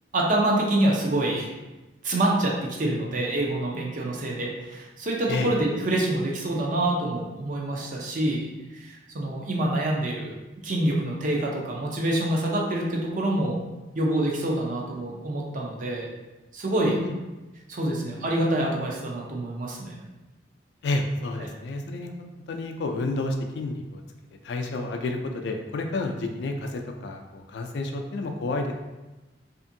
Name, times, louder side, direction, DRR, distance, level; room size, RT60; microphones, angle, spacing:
voice 1, 0.1-1.5 2.0-13.6 13.9-16.1 16.5-17.0 17.7-20.0 21.4-21.5, right 1 dB, 45° right, -1 dB, 0.5 m, -26 dB
voice 2, 16.8-17.1 20.8-22.1 22.5-24.0 24.4-28.7, left 2 dB, 70° left, 3 dB, 0.3 m, -30 dB
2.6 x 2.5 x 2.6 m, 1.1 s
head